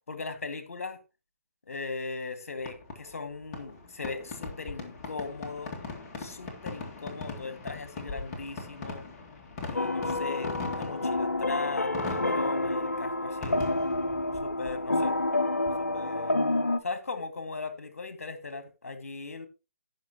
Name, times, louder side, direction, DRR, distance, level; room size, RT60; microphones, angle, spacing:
voice 1, 0.1-1.0 1.7-5.8 6.2-9.0 9.7-13.6 14.4-15.2 15.8-16.4 16.8-19.5, left 4 dB, 65° left, 2.0 m, -38 dB
Fireworks, 2.6-16.2, left 3 dB, 30° left, 2.0 m, -41 dB
sound 1, 9.7-16.8, left 2 dB, 80° left, 0.7 m, -29 dB
16.5 x 5.8 x 2.9 m
figure-of-eight pair, 135°, 8 cm